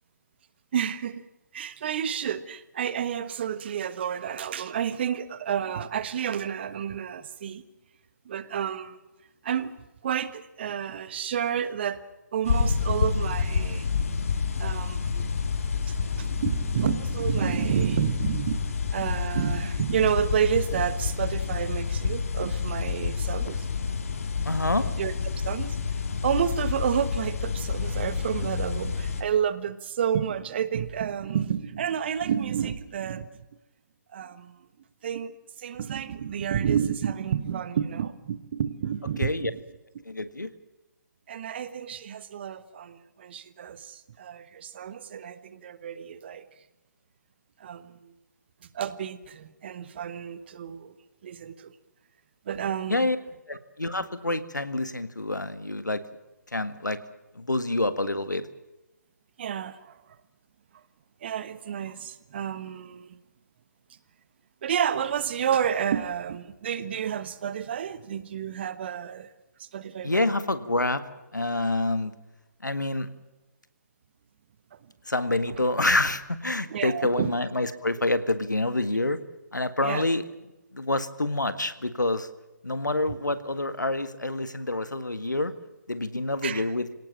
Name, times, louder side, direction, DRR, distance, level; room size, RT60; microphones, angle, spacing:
voice 1, 0.7-1.3 1.5-7.6 8.2-9.0 9.4-9.7 10.0-12.0 12.3-13.9 14.6-15.3 15.9-23.7 24.8-25.8 26.2-33.3 34.1-34.6 35.0-35.3 35.6-39.6 41.3-46.4 47.6-48.1 48.6-51.0 51.2-51.7 52.4-53.1 59.4-60.2 61.2-63.2 64.6-69.3 69.6-70.3 75.5-75.6 76.7-77.3 79.8-80.1 86.4-86.7, right 8 dB, 35° right, 14 dB, 1.3 m, -30 dB
sound 1, 12.4-29.2, left 5 dB, 50° left, 2.2 m, -29 dB
voice 2, 24.5-24.9 39.2-39.5 40.1-40.5 52.9-53.2 53.5-56.0 56.5-57.0 57.4-58.5 70.0-71.0 71.3-72.1 72.6-73.1 75.1-79.2 79.5-80.2 80.7-82.3 82.6-85.5 85.9-86.9, left 2 dB, 80° left, 12 dB, 1.7 m, -27 dB
26.0 x 18.0 x 7.4 m, 1.0 s
figure-of-eight pair, 145°, 10 cm